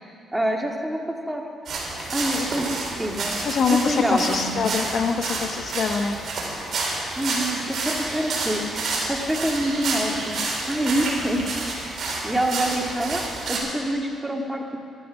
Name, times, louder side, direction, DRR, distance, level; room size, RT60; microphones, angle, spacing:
voice 1, 0.3-1.4 2.1-3.4 3.7-4.6 6.6-6.7 7.1-10.4 10.7-11.4 11.8-13.2 13.5-14.8, right 1 dB, 10° right, 1 dB, 2.0 m, -26 dB
sound 1, 1.7-13.6, right 3 dB, 50° right, 4.1 m, -29 dB
voice 2, 3.4-6.2, left 5 dB, 60° left, 6 dB, 0.9 m, -24 dB
13.5 x 12.5 x 6.3 m, 2.3 s
cardioid pair, 90°, 0 cm